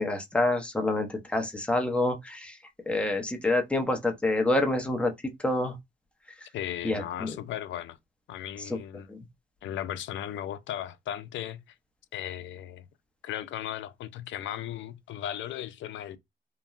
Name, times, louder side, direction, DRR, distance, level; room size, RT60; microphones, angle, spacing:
voice 1, 0.0-2.6 2.9-5.1 5.4-5.8 6.8-7.4 9.1-9.2, left 2 dB, 5° left, 0.7 m, -27 dB
voice 2, 6.5-8.0 8.3-9.1 9.6-11.6 12.1-12.9 13.2-16.2, left 11 dB, 70° left, 0.4 m, -36 dB
3.0 x 2.2 x 2.4 m
cardioid pair, 90°, 20 cm